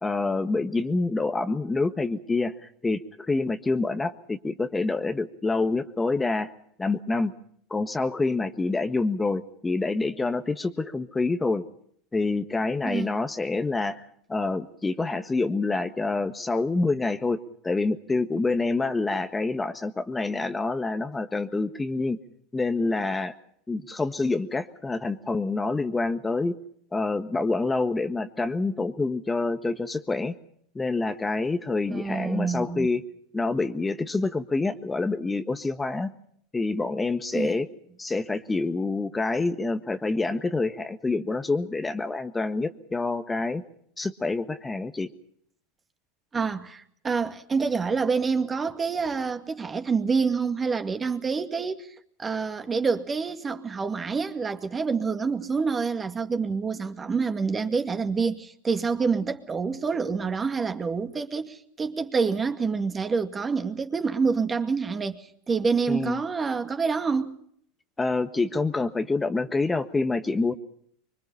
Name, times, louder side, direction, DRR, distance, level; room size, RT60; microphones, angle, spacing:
voice 1, 0.0-2.5 2.8-3.0 3.3-6.5 6.8-7.3 7.7-11.6 12.1-14.0 14.3-17.4 17.6-22.2 22.5-23.3 23.7-26.5 26.9-30.3 30.7-33.0 33.3-36.1 36.5-37.7 38.0-43.6 44.0-45.1 65.9-66.2 68.0-70.5, left 3 dB, 15° left, 1.5 m, -27 dB
voice 2, 31.9-32.9 37.3-37.6 46.3-51.9 52.2-67.4, right 5 dB, 25° right, 2.1 m, -27 dB
25.5 x 23.5 x 5.5 m
hypercardioid pair, 85°, 0 cm